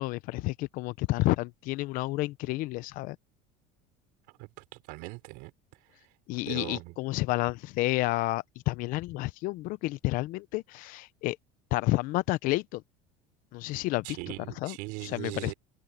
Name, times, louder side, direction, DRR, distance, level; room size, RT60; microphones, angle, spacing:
voice 1, 0.0-3.2 6.3-11.4 11.7-12.8 13.5-14.2 14.6-14.8 15.0-15.5, left 20 dB, 60° left, 0.8 m, -30 dB
voice 2, 4.4-5.5 5.8-6.1 6.5-6.9 14.0-15.5, right 25 dB, 70° right, 5.5 m, -40 dB
supercardioid pair, 120°, 16 cm